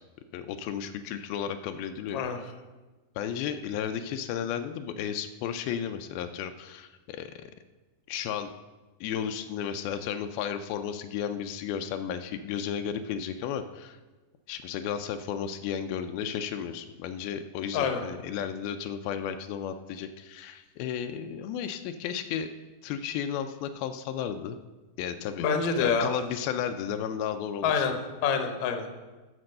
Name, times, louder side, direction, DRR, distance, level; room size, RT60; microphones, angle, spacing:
voice 1, 0.3-2.5 3.2-7.5 8.1-8.5 9.0-14.0 14.5-22.5 22.8-24.6 25.0-25.5 25.8-27.9, left 8 dB, 85° left, 8 dB, 2.4 m, -33 dB
voice 2, 25.4-26.1 27.6-28.0 28.2-28.9, left 6 dB, 65° left, 6 dB, 2.0 m, -26 dB
13.5 x 5.2 x 6.5 m, 1.2 s
omnidirectional pair, 4.3 m